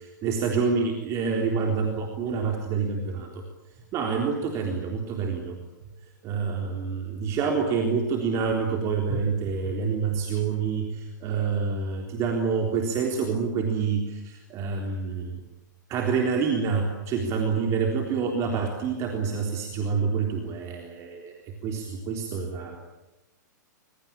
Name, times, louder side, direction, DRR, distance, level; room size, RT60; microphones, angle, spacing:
voice 1, 0.2-3.4 3.9-5.6 6.2-15.4 15.9-22.8, right 5 dB, 30° right, 2 dB, 3.8 m, -27 dB
26.0 x 23.5 x 8.8 m, 0.99 s
figure-of-eight pair, 110°, 10 cm